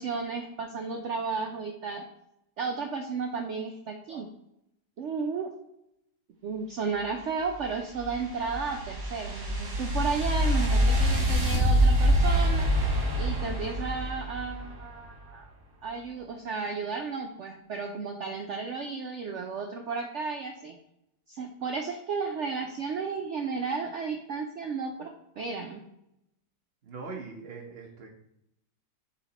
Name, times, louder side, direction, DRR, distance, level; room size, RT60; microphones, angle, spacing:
voice 1, 0.0-2.1 2.6-4.3 5.0-5.5 6.4-12.7 13.2-15.5 15.8-20.8 21.3-25.8, right 5 dB, 90° right, 3 dB, 0.6 m, -33 dB
sound 1, 7.5-14.8, equal, 65° right, 2.5 m, -25 dB
voice 2, 26.8-28.1, right 4 dB, 45° right, 2 dB, 0.9 m, -41 dB
5.7 x 4.3 x 4.0 m, 0.81 s
omnidirectional pair, 1.9 m